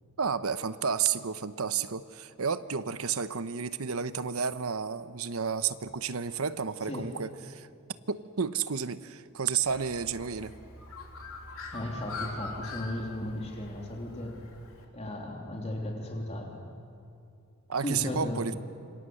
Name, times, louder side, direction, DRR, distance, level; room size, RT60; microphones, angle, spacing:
voice 1, 0.2-7.7 8.1-10.6 17.7-18.5, right 6 dB, 85° right, 13 dB, 0.9 m, -31 dB
Bird, 9.6-14.8, left 3 dB, 75° left, 3.5 m, -43 dB
voice 2, 11.7-14.4 14.9-16.6 17.8-18.6, left 1 dB, 30° left, 1 dB, 3.2 m, -35 dB
28.0 x 25.0 x 7.8 m, 2.5 s
head